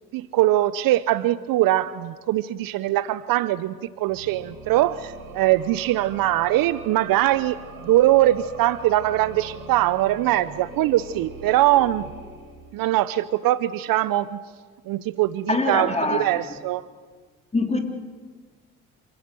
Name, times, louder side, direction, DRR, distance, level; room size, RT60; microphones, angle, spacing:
voice 1, 0.1-12.1 12.7-14.4 14.9-16.9, right 14 dB, 55° right, 17 dB, 0.8 m, -22 dB
sound 1, 4.0-13.1, right 3 dB, 85° right, 4.4 m, -42 dB
voice 2, 15.5-16.3 17.5-17.8, left 2 dB, 15° left, 4 dB, 3.6 m, -23 dB
27.5 x 16.5 x 7.9 m, 1.5 s
hypercardioid pair, 65°, 41 cm